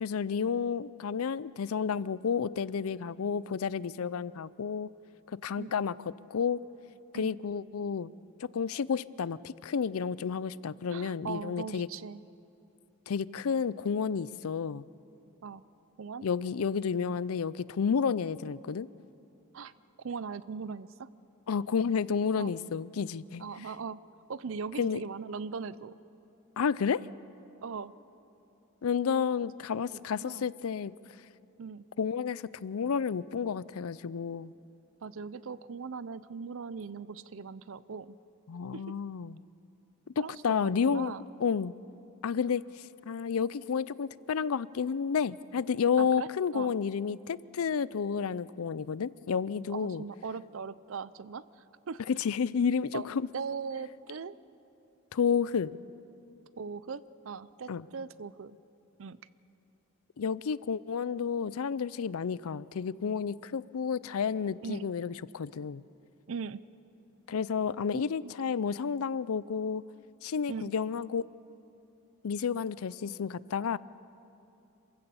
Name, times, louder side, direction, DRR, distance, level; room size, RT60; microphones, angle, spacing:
voice 1, 0.0-4.9 5.3-6.0 6.3-6.6 7.1-8.1 8.4-11.9 13.1-14.8 16.2-18.9 21.5-23.4 24.8-25.0 26.6-27.1 28.8-30.9 32.0-34.5 38.5-39.4 40.2-41.1 41.4-41.7 42.2-42.6 43.1-50.0 52.1-53.3 55.1-55.8 57.7-57.9 60.2-65.8 67.3-69.8 70.2-71.2 72.2-73.8, left 6 dB, 75° left, 20 dB, 0.4 m, -31 dB
voice 2, 10.9-12.2 15.4-15.6 16.0-16.3 19.5-19.7 20.0-21.1 22.4-22.5 23.4-24.0 24.3-26.0 27.6-27.9 29.9-30.4 31.6-31.8 35.0-38.2 38.7-38.8 40.2-41.2 46.0-46.7 49.7-51.4 51.9-52.0 52.9-53.0 53.3-54.4 56.6-58.6 59.0-59.2 64.6-64.9 66.3-66.6 67.9-68.3 70.5-70.7, right 5 dB, 65° right, 17 dB, 0.5 m, -39 dB
27.5 x 16.0 x 7.0 m, 2.8 s
head